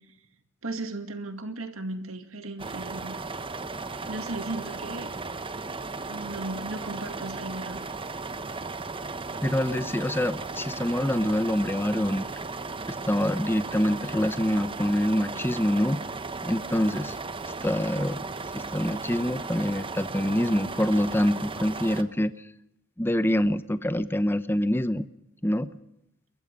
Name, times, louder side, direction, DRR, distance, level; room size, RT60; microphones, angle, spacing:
voice 1, 0.6-3.2 4.1-5.1 6.0-7.8, right 2 dB, 75° right, 8 dB, 2.2 m, -36 dB
sound 1, 2.6-22.0, right 3 dB, 25° right, 1.1 m, -36 dB
voice 2, 9.4-12.3 12.9-16.0 16.4-17.1 17.6-18.2 18.5-22.3 23.0-25.1 25.4-25.7, left 1 dB, 10° left, 13 dB, 0.8 m, -25 dB
28.5 x 22.0 x 5.4 m, 0.82 s
head